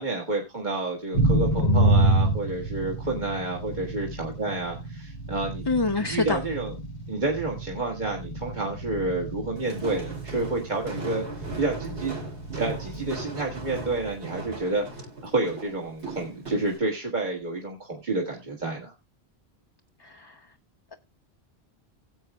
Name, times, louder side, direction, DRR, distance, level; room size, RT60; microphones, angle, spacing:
voice 1, 0.0-5.7 6.0-6.7 7.1-12.1 12.5-18.9, right 2 dB, 45° right, 1.8 m, -30 dB
sound 1, 1.1-14.1, right 1 dB, 80° left, 1.6 m, -28 dB
voice 2, 5.7-6.4 20.0-20.4, left 3 dB, 30° left, 0.5 m, -26 dB
Walk footsteps, 9.6-16.8, right 2 dB, 80° right, 3.3 m, -38 dB
17.5 x 7.9 x 2.3 m
omnidirectional pair, 1.1 m